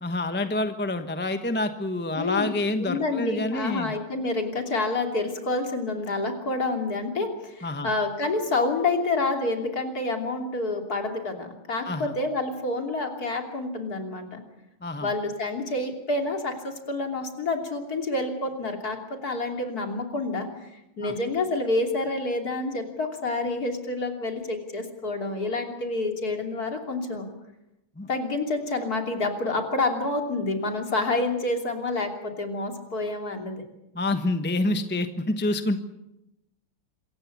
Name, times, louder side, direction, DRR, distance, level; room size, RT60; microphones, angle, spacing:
voice 1, 0.0-3.9 7.6-7.9 11.8-12.1 14.8-15.1 21.0-21.1 28.0-28.1 33.9-35.8, left 2 dB, 10° left, 8 dB, 0.8 m, -27 dB
voice 2, 2.2-14.4 15.0-27.3 28.1-33.6, left 2 dB, 45° left, 4 dB, 3.5 m, -28 dB
26.5 x 15.5 x 8.6 m, 0.90 s
omnidirectional pair, 2.2 m